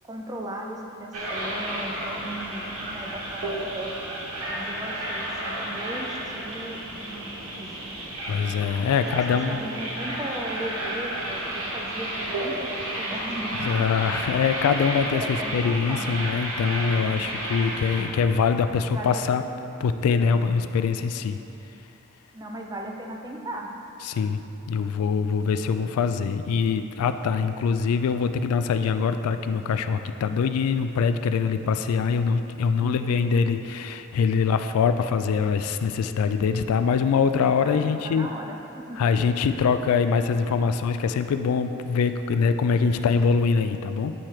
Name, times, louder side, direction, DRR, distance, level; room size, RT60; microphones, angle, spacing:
voice 1, 0.1-3.9 4.5-7.9 9.3-13.7 14.9-16.1 16.8-17.2 18.8-19.3 20.2-20.7 22.3-23.7 32.8-33.3 37.6-39.0, right 1 dB, 15° right, 0 dB, 0.4 m, -37 dB
sound 1, 1.1-18.0, right 1 dB, 85° right, 1.2 m, -32 dB
voice 2, 8.3-9.6 13.7-19.4 19.8-21.4 24.0-24.4 24.7-38.3 39.0-44.1, left 5 dB, 90° left, 12 dB, 0.3 m, -23 dB
8.7 x 3.2 x 4.4 m, 2.9 s
head